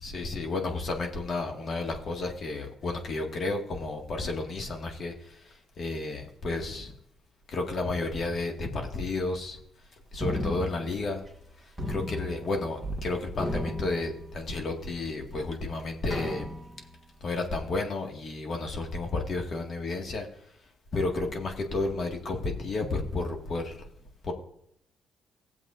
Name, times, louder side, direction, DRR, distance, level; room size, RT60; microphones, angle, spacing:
voice 1, 0.0-6.9 7.5-9.6 10.1-11.2 11.6-16.5 17.2-20.5 20.9-23.9 24.2-24.3, left 2 dB, 50° left, 2 dB, 1.9 m, -32 dB
sound 1, 10.2-11.4 11.8-13.1 13.3-14.7 15.2-15.3 16.1-16.9, left 1 dB, ahead, 1.9 m, -35 dB
17.5 x 7.5 x 2.6 m, 0.74 s
cardioid pair, 90°, 0 cm